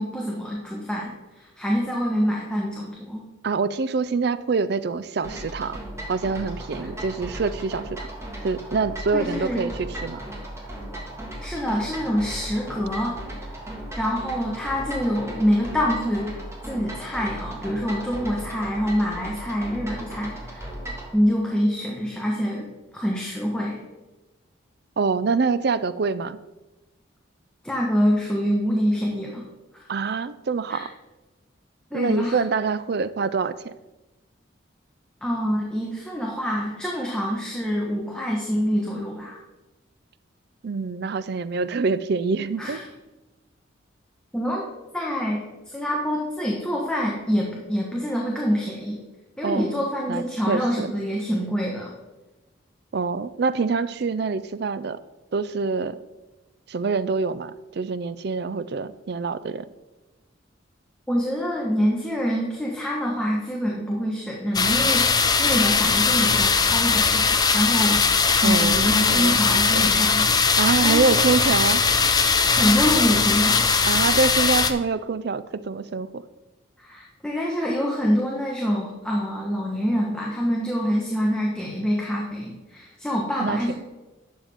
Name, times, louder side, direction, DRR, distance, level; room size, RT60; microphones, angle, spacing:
voice 1, 0.0-3.2 9.1-9.7 11.4-13.2 13.9-16.3 16.6-20.7 21.1-23.8 27.6-29.4 30.7-30.8 31.9-32.4 35.2-39.4 42.6-42.8 44.3-44.7 44.9-49.0 49.4-51.9 61.1-70.3 70.8-71.5 72.5-74.0 76.8-83.7, equal, 5° left, -2 dB, 1.1 m, -26 dB
voice 2, 3.4-5.8 6.1-8.1 8.4-10.2 25.0-26.4 29.9-30.9 31.9-33.7 40.6-42.8 49.4-49.8 50.1-50.9 52.9-55.0 55.3-56.0 56.7-59.7 68.4-69.4 69.7-69.9 70.6-71.8 73.9-76.2 83.4-83.7, right 4 dB, 55° right, 14 dB, 0.4 m, -25 dB
sound 1, 5.2-21.1, right 1 dB, 15° right, 1.7 m, -36 dB
sound 2, 64.5-74.7, left 5 dB, 20° left, 0.5 m, -20 dB
11.0 x 7.1 x 3.5 m, 1.1 s
head